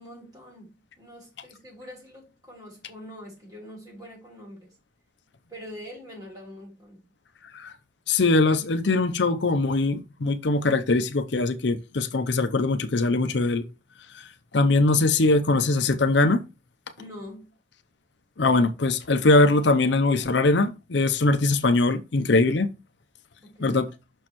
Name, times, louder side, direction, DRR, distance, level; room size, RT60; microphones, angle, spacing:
voice 1, 0.0-4.7 5.5-7.1 17.0-17.5 23.4-23.8, equal, 20° right, 3.3 m, -44 dB
voice 2, 8.1-13.6 14.5-16.4 18.4-22.7 23.6-23.9, left 2 dB, 70° left, 0.6 m, -21 dB
6.3 x 6.2 x 3.0 m
head